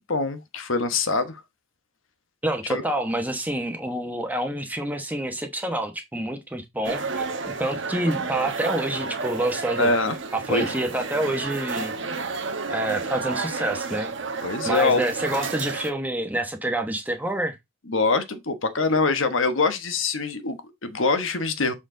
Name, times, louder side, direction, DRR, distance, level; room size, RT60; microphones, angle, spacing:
voice 1, 0.0-1.4 2.7-2.8 9.8-10.2 10.5-10.7 14.4-15.0 17.9-21.7, left 3 dB, 70° left, 1.1 m, -24 dB
voice 2, 2.4-7.3 7.6-9.9 10.3-11.9 12.7-14.1 14.6-17.6, right 1 dB, 10° right, 1.1 m, -27 dB
sound 1, 6.8-15.9, right 4 dB, 60° right, 1.1 m, -31 dB
6.9 x 4.4 x 3.7 m
head